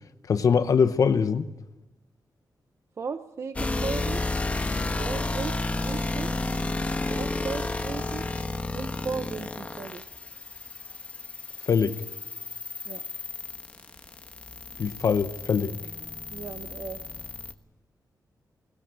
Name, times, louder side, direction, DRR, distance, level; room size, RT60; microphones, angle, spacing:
voice 1, 0.3-1.5 11.7-12.0 14.8-15.8, left 6 dB, 50° left, 11 dB, 0.9 m, -23 dB
voice 2, 3.0-4.2 5.0-6.4 7.1-8.2 8.7-10.0 12.8-13.0 16.3-17.0, right 5 dB, 40° right, 9 dB, 0.8 m, -36 dB
sound 1, 3.6-17.5, left 2 dB, 20° left, 1.3 m, -32 dB
22.0 x 19.5 x 8.9 m, 1.0 s
wide cardioid pair, 175°, 7 cm